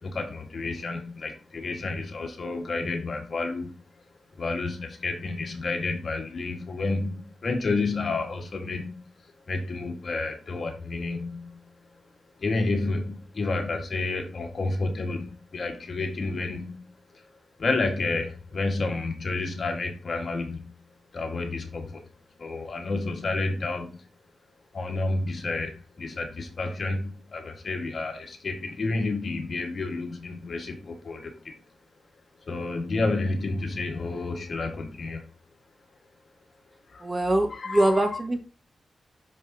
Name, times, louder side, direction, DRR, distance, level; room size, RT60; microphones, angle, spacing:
voice 1, 0.0-4.0 4.3-12.1 12.4-17.2 17.6-22.1 22.4-24.1 24.7-31.6 32.4-35.3 36.9-37.1 37.5-38.0, left 3 dB, 55° left, 1.6 m, -30 dB
voice 2, 37.0-38.4, right 1 dB, 30° right, 1.5 m, -23 dB
6.2 x 5.3 x 2.8 m
cardioid pair, 65°, 0 cm